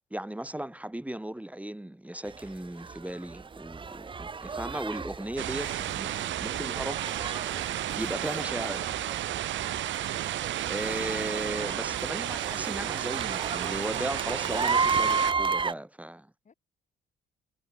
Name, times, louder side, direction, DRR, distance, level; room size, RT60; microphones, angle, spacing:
voice 1, 0.1-7.0 7.9-8.8 10.7-16.3, right 1 dB, 5° right, 2.1 m, -36 dB
sound 1, 2.3-15.7, right 5 dB, 25° right, 0.7 m, -34 dB
sound 2, 5.4-15.3, right 13 dB, 70° right, 0.9 m, -32 dB
voice 2, 8.2-9.1 16.4-16.5, left 5 dB, 40° left, 3.8 m, -62 dB
cardioid pair, 90°, 20 cm